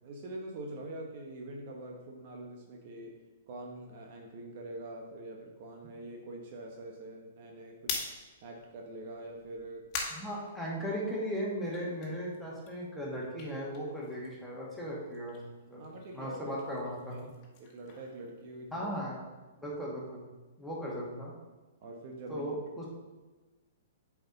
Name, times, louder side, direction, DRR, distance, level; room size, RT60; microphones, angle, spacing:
voice 1, 0.0-3.1 3.5-8.0 8.4-9.9 10.2-10.3 15.8-16.6 17.1-17.3 17.6-18.9 21.8-22.5, right 2 dB, 50° right, 1 dB, 1.1 m, -44 dB
sound 1, 7.7-11.2 11.6-14.5 14.8-19.0, left 4 dB, 35° left, 1.6 m, -44 dB
voice 2, 10.1-15.4 15.7-15.8 16.1-17.3 18.7-19.2 19.6-20.2 20.6-21.3 22.3-22.9, equal, 5° left, -6 dB, 2.2 m, -37 dB
7.7 x 4.8 x 4.0 m, 1.2 s
hypercardioid pair, 115°, 0 cm